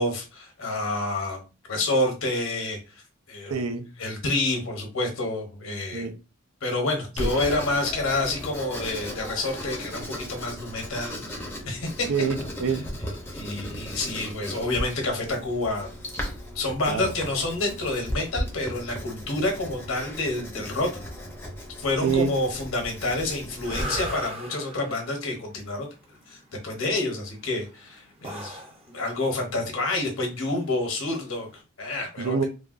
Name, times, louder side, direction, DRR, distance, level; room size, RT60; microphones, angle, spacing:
voice 1, 0.0-1.4 1.7-2.8 3.3-3.6 4.0-6.1 6.6-12.1 13.3-15.9 16.5-20.9 21.8-25.9 26.3-28.6 28.9-32.4, left 2 dB, 75° left, 1.0 m, -28 dB
voice 2, 3.5-3.9 5.9-6.1 7.2-7.3 12.1-12.8 16.9-17.1 22.0-22.3 32.2-32.4, right 5 dB, 85° right, 0.5 m, -26 dB
Writing, 7.2-23.8, equal, 10° left, 0.6 m, -36 dB
sound 1, 23.5-31.6, right 1 dB, 30° right, 0.6 m, -39 dB
3.3 x 2.3 x 2.4 m
head